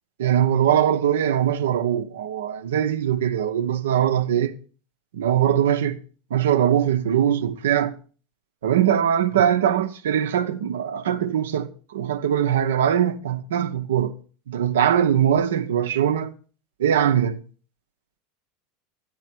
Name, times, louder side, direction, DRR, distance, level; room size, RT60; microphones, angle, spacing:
voice 1, 0.2-4.5 5.1-6.0 6.3-7.9 8.6-14.1 14.5-16.3 16.8-17.4, right 9 dB, 85° right, 0.7 m, -21 dB
12.0 x 10.0 x 4.4 m
hypercardioid pair, 100°, 0 cm